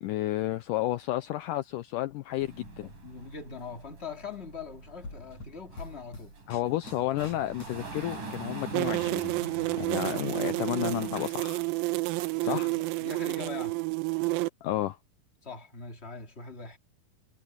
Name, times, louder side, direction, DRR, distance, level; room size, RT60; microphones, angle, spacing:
voice 1, 0.0-2.9 6.5-9.3 9.8-11.6 12.4-12.7 14.6-15.0, left 15 dB, 90° left, 1.9 m, -31 dB
sound 1, 2.4-11.3, right 3 dB, 55° right, 9.2 m, -43 dB
voice 2, 2.8-6.3 9.9-10.3 12.4-13.8 15.4-16.8, left 5 dB, 25° left, 1.8 m, -42 dB
sound 2, 5.0-8.4 8.7-10.2 10.5-11.4, left 2 dB, 40° left, 9.3 m, -47 dB
sound 3, 8.7-14.5, right 22 dB, 80° right, 2.3 m, -30 dB
omnidirectional pair, 4.4 m